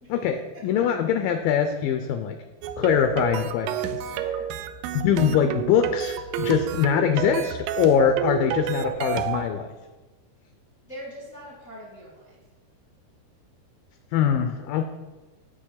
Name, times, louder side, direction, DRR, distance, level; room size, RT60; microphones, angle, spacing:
voice 1, 0.1-2.4 2.8-4.0 4.9-9.7 14.1-14.8, left 8 dB, 80° left, 7 dB, 2.0 m, -23 dB
sound 1, 2.6-9.5, right 10 dB, 90° right, 2.0 m, -30 dB
voice 2, 4.0-4.5 10.8-12.4, equal, 40° left, -5 dB, 1.0 m, -42 dB
7.5 x 7.0 x 5.8 m, 1.2 s
omnidirectional pair, 4.6 m